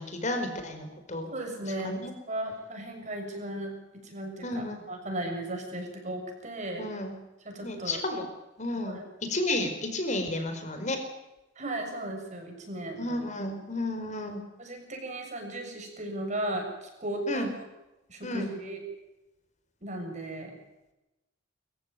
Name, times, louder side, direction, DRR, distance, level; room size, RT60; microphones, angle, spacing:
voice 1, 0.0-1.3 1.8-2.1 4.4-4.8 6.8-7.1 7.6-8.2 8.6-9.0 9.3-11.0 13.0-14.4 17.3-17.5 18.2-18.5, left 2 dB, 40° left, 6 dB, 4.7 m, -32 dB
voice 2, 1.3-6.8 7.4-8.0 8.8-9.0 11.5-13.3 14.6-17.5 18.1-18.8 19.8-20.5, right 1 dB, 40° right, 3 dB, 6.8 m, -36 dB
25.0 x 15.0 x 9.3 m, 0.98 s
head